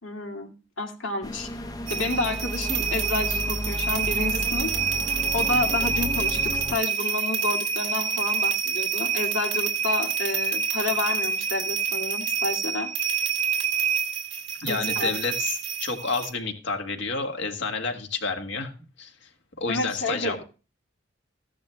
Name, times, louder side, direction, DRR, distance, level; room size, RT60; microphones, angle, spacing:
voice 1, 0.0-1.5 1.9-4.7 5.3-12.9 14.6-15.1 19.7-20.4, left 2 dB, 85° left, 2 dB, 2.3 m, -30 dB
sound 1, 1.2-6.8, left 1 dB, 20° left, 0.6 m, -33 dB
sound 2, 1.9-16.3, right 6 dB, 85° right, 1.6 m, -27 dB
voice 2, 14.6-18.7 19.0-19.3 19.6-20.4, left 4 dB, 65° left, 4 dB, 1.9 m, -30 dB
15.0 x 11.0 x 2.2 m, 0.33 s
head